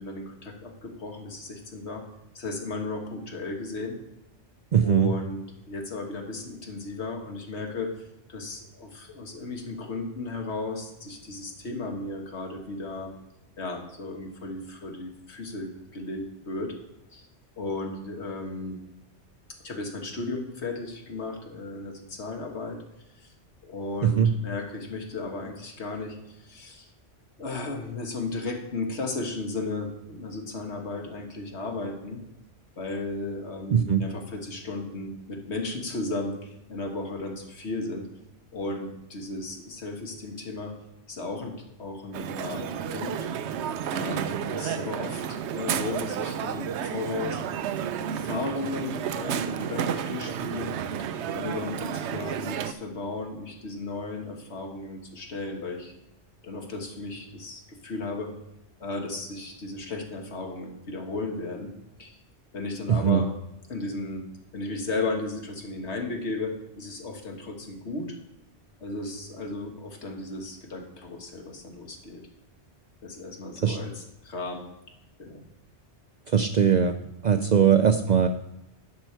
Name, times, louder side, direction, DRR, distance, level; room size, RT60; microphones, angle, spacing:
voice 1, 0.0-2.1 2.4-4.0 4.8-5.4 5.7-13.1 13.6-16.8 17.1-17.3 17.6-18.8 19.6-22.8 23.2-23.3 23.6-26.9 27.4-32.2 32.8-38.1 38.5-40.8 41.1-43.3 43.9-47.4 48.1-50.7 51.3-55.9 56.4-58.3 58.8-61.7 62.0-62.2 62.5-63.3 63.7-64.3 64.5-68.2 68.8-72.2 73.0-74.7 75.2-75.4 77.4-77.6, left 3 dB, 75° left, 3 dB, 1.7 m, -35 dB
voice 2, 4.7-5.1 24.0-24.3 33.7-34.0 62.9-63.2 73.6-73.8 76.3-77.0 77.2-78.3, right 8 dB, 55° right, 7 dB, 0.5 m, -20 dB
Crowd, 42.1-52.7, right 8 dB, 75° right, 0.9 m, -31 dB
10.5 x 6.6 x 4.5 m, 0.88 s
omnidirectional pair, 1.2 m